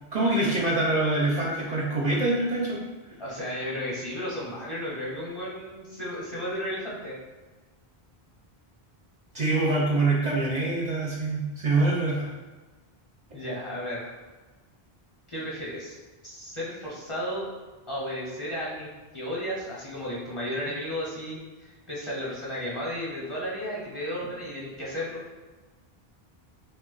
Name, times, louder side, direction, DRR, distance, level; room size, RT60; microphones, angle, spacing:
voice 1, 0.1-2.8 9.3-12.3, right 2 dB, 55° right, -4 dB, 0.5 m, -25 dB
voice 2, 3.2-7.1 13.3-14.1 15.3-15.9 16.2-17.5 17.9-25.2, equal, 35° left, -6 dB, 0.7 m, -34 dB
2.7 x 2.2 x 3.7 m, 1.2 s
omnidirectional pair, 1.0 m